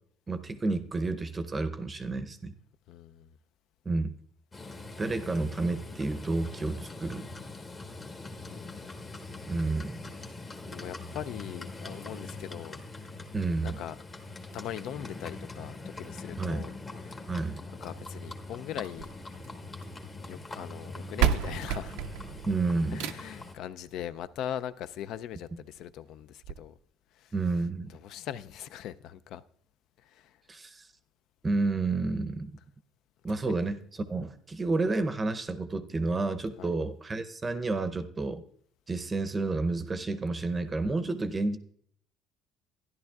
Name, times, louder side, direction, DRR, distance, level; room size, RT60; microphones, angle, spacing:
voice 1, 0.3-2.5 3.9-4.1 5.0-7.3 9.5-10.0 13.3-13.8 16.4-16.7 17.3-17.6 22.5-23.1 27.3-27.9 30.5-30.9 31.4-32.5 33.2-38.4 38.9-41.6, right 3 dB, 25° right, 0.6 m, -30 dB
voice 2, 2.9-3.3 8.5-8.9 10.7-12.8 13.6-14.0 14.5-16.7 17.0-17.2 17.8-19.1 20.2-22.0 22.9-26.7 27.2-27.3 27.9-29.4 30.0-30.4 33.4-33.6 36.6-36.7, left 10 dB, 65° left, 0.3 m, -40 dB
Livestock farm animals working animals, 4.5-23.5, left 2 dB, 30° left, 1.2 m, -43 dB
sound 1, 18.8-20.0 20.8-20.9 21.2-23.5 24.8-24.9 25.4-25.5 25.8-25.9 26.4-26.5, right 10 dB, 80° right, 0.4 m, -31 dB
13.5 x 10.5 x 2.3 m
supercardioid pair, 90°, 0 cm